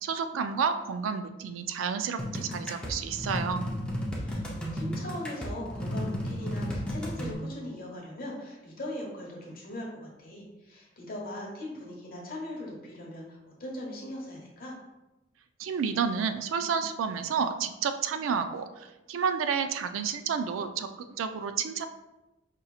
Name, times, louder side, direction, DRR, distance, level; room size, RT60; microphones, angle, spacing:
voice 1, 0.0-3.6 15.6-21.9, right 6 dB, 85° right, 9 dB, 0.3 m, -30 dB
sound 1, 2.2-7.3, equal, 5° left, 0.6 m, -33 dB
voice 2, 4.2-14.7, left 1 dB, 50° left, -3 dB, 1.0 m, -40 dB
5.0 x 2.8 x 2.3 m, 1.0 s
head